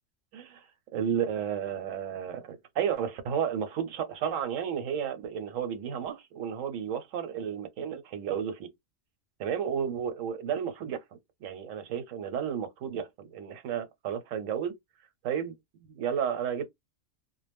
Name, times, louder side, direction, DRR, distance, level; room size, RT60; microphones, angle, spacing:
voice 1, 0.3-0.6 0.9-8.7 9.4-11.0 11.4-14.7 15.2-15.5 15.9-16.6, right 8 dB, 85° right, 1.0 m, -32 dB
2.0 x 2.0 x 3.4 m
omnidirectional pair, 1.3 m